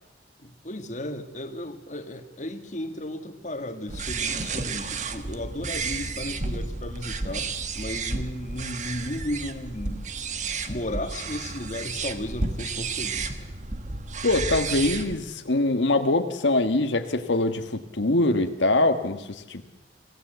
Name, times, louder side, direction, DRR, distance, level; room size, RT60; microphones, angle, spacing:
voice 1, 0.4-7.5 7.8-10.0 10.7-13.5, left 1 dB, 40° left, 6 dB, 1.9 m, -35 dB
sound 1, 3.9-15.2, right 4 dB, 40° right, 1.3 m, -32 dB
voice 2, 14.2-19.6, left 2 dB, 90° left, 6 dB, 1.5 m, -23 dB
25.0 x 16.0 x 8.1 m, 0.98 s
head